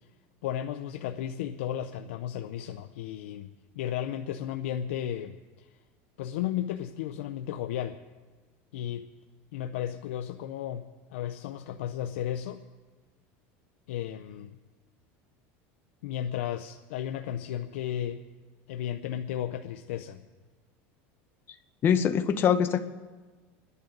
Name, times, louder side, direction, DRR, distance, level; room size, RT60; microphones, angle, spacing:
voice 1, 0.4-5.7 6.2-8.0 8.7-9.1 9.5-12.6 13.9-14.6 16.0-18.2 18.7-20.2, left 10 dB, 85° left, 6 dB, 0.7 m, -34 dB
voice 2, 21.8-22.8, left 8 dB, 35° left, 8 dB, 1.0 m, -23 dB
29.0 x 11.0 x 3.9 m, 1.3 s
supercardioid pair, 135°, 7 cm